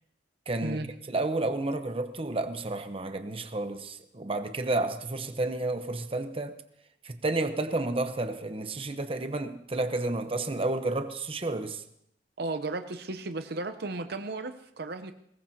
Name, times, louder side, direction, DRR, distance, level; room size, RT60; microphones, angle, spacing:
voice 1, 0.5-0.8 1.1-6.6 7.0-11.8, right 2 dB, 30° right, 0.9 m, -31 dB
voice 2, 12.4-15.1, right 2 dB, 65° right, 0.8 m, -34 dB
22.0 x 19.5 x 2.8 m
head